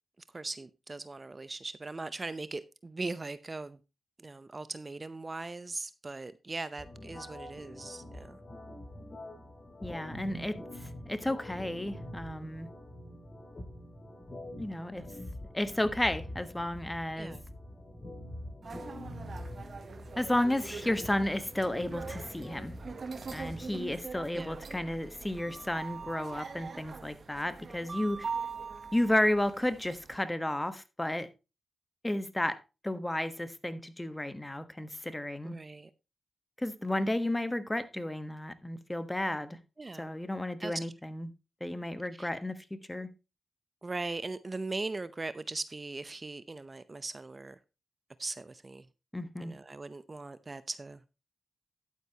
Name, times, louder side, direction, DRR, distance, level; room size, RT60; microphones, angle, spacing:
voice 1, 0.3-3.8 4.2-8.4 15.0-15.1 17.2-17.4 24.3-24.6 35.4-35.9 39.8-40.2 40.6-40.9 42.2-42.3 43.8-47.6 48.2-48.9 49.4-51.0, right 3 dB, 35° right, 0.7 m, -39 dB
sound 1, 6.8-23.8, left 1 dB, 45° left, 5.4 m, -45 dB
voice 2, 9.8-12.7 14.6-15.0 15.5-17.3 20.2-22.7 23.3-28.3 28.9-31.3 32.0-35.6 36.6-39.6 40.0-41.3 41.6-43.1 49.1-49.5, left 1 dB, 15° left, 1.3 m, -32 dB
sound 2, 18.6-30.2, right 5 dB, 60° right, 1.1 m, -43 dB
11.5 x 9.0 x 2.9 m
cardioid pair, 50°, 0 cm